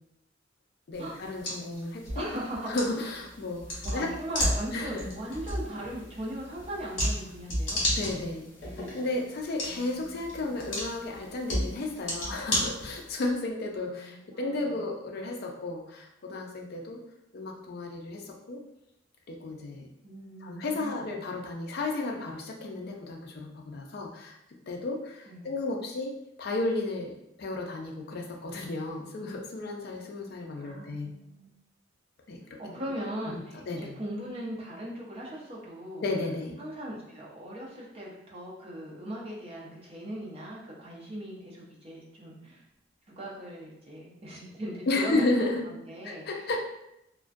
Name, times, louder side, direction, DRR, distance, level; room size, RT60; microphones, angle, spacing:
sound 1, 0.9-13.3, equal, 70° left, 1.0 m, -34 dB
voice 1, 0.9-2.3 2.7-4.1 4.7-5.1 8.0-17.0 17.3-18.6 19.3-19.9 20.4-24.4 24.7-26.1 26.4-31.1 32.3-32.7 33.5-33.9 36.0-36.6 44.9-45.6 46.0-46.6, left 2 dB, 55° left, 1 dB, 0.4 m, -33 dB
voice 2, 2.1-2.8 3.8-7.8 9.6-10.5 13.8-14.8 20.0-21.1 25.3-25.6 30.5-31.5 32.6-36.0 36.6-42.6 43.1-45.3 45.7-46.5, right 1 dB, 30° right, -5 dB, 0.6 m, -39 dB
2.3 x 2.2 x 2.5 m, 0.82 s
head